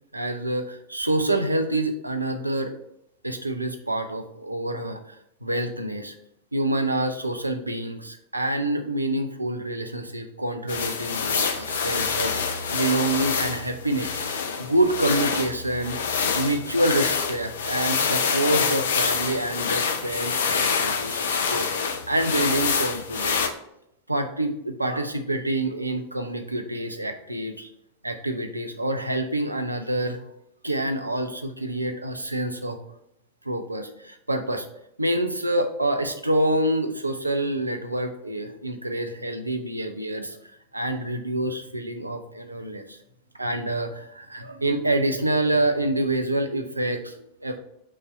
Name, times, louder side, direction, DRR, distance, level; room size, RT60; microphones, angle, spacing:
voice 1, 0.1-2.7 3.2-6.2 6.5-14.2 14.6-16.0 16.3-23.4 24.1-27.7 28.0-30.2 30.6-32.8 33.4-34.7 35.0-40.4 40.7-43.0 43.4-47.6, right 1 dB, 85° right, 7 dB, 0.6 m, -27 dB
sound 1, 10.7-23.5, left 6 dB, 65° left, 0.6 m, -26 dB
5.5 x 3.4 x 5.1 m, 0.79 s
figure-of-eight pair, 90°, 0 cm